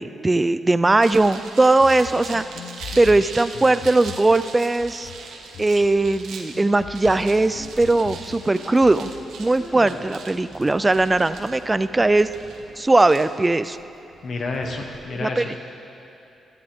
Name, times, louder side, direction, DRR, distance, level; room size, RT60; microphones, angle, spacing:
voice 1, 0.0-2.4 3.0-5.1 5.6-9.1 9.4-12.3 12.8-13.8 15.2-15.5, right 2 dB, 15° right, 13 dB, 0.3 m, -19 dB
sound 1, 1.0-15.0, right 4 dB, 85° right, 1.1 m, -41 dB
sound 2, 1.8-9.4, left 8 dB, 80° left, 0.4 m, -41 dB
Conversation, 4.4-13.0, left 1 dB, 25° left, 1.3 m, -47 dB
voice 2, 14.2-15.6, left 3 dB, 50° left, 1 dB, 1.3 m, -29 dB
16.5 x 12.5 x 3.6 m, 2.7 s
cardioid pair, 135°, 0 cm